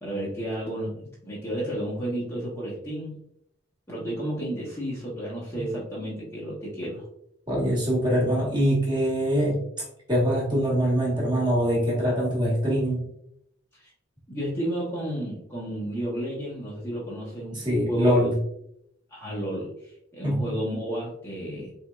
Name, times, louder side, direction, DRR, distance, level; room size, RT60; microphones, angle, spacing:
voice 1, 0.0-3.2 3.9-7.0 13.8-13.9 14.3-18.2 19.1-21.7, right 1 dB, 15° left, -6 dB, 0.7 m, -32 dB
voice 2, 7.5-13.1 17.5-18.3 20.2-20.6, equal, 20° right, -4 dB, 1.0 m, -24 dB
3.4 x 2.9 x 2.2 m, 0.74 s
head